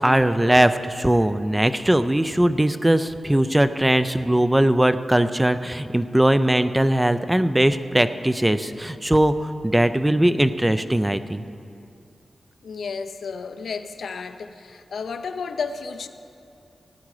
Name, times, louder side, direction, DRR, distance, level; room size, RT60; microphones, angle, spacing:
voice 1, 0.0-9.3 9.6-11.4, right 1 dB, 10° right, 11 dB, 0.4 m, -20 dB
voice 2, 12.6-16.1, left 5 dB, 85° left, 9 dB, 0.6 m, -32 dB
15.5 x 9.7 x 4.9 m, 2.6 s
wide cardioid pair, 130°, 0 cm